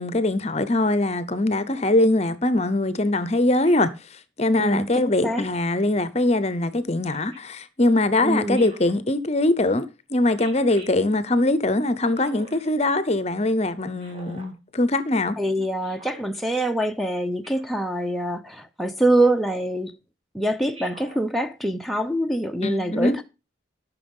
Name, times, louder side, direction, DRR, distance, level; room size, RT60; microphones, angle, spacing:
voice 1, 0.0-3.9 4.4-15.4 22.6-23.2, left 2 dB, 35° left, 0.8 m, -22 dB
Speech synthesizer, 3.7-4.0 5.2-5.6 7.0-7.4 8.5-9.0 10.4-10.9 12.1-12.7 14.0-14.5 15.8-16.2 17.4-17.8 19.1-19.5 20.7-21.2, right 2 dB, 30° right, 2.6 m, -45 dB
voice 2, 4.6-5.5 8.2-8.6 15.4-20.0 20.3-23.2, right 1 dB, ahead, 0.7 m, -24 dB
12.5 x 6.1 x 5.4 m
head